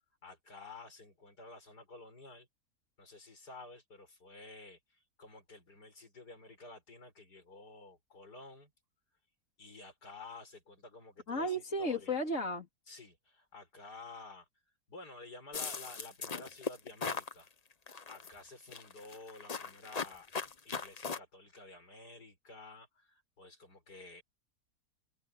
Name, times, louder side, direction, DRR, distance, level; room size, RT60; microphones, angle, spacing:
voice 1, 0.2-2.5 3.0-8.7 9.6-12.2 12.9-14.5 14.9-17.5 18.1-20.3 20.6-24.2, left 2 dB, 70° left, 6.5 m, -52 dB
voice 2, 11.3-12.7, left 1 dB, 45° left, 3.8 m, -34 dB
sound 1, 15.5-17.3 17.9-18.3 18.7-21.2, left 5 dB, 30° left, 0.7 m, -38 dB
omnidirectional pair, 1.8 m